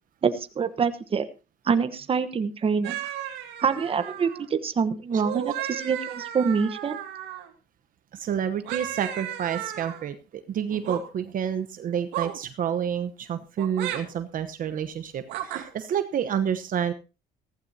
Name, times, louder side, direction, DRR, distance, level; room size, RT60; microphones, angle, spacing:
voice 1, 0.2-1.2 1.6-3.0 3.6-5.5 5.8-7.0, right 6 dB, 35° right, 10 dB, 1.2 m, -25 dB
sound 1, 2.8-4.5 5.1-7.5 8.6-10.0 10.7-11.0 12.1-12.4 13.6-14.0 15.3-15.6, right 11 dB, 90° right, 2.3 m, -34 dB
voice 2, 8.1-16.9, right 8 dB, 55° right, 10 dB, 1.0 m, -29 dB
15.5 x 15.0 x 2.8 m, 0.30 s
cardioid pair, 110°, 17 cm